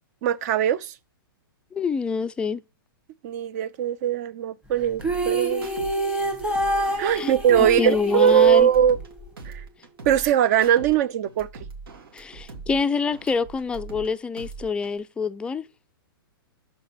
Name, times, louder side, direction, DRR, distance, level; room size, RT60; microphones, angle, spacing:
voice 1, 0.2-0.9 3.2-5.7 7.0-9.0 9.4-9.6 10.1-11.5, right 9 dB, 45° right, 0.7 m, -20 dB
voice 2, 1.7-2.6 7.2-8.7 12.1-15.7, left 5 dB, 10° left, 0.4 m, -26 dB
sound 1, 5.0-9.3, right 1 dB, 10° right, 1.3 m, -27 dB
sound 2, 5.0-5.9 6.2-9.1 9.4-10.9 11.2-14.1 14.4-15.0, right 4 dB, 80° right, 2.4 m, -41 dB
6.5 x 4.2 x 6.0 m
hypercardioid pair, 135°, 12 cm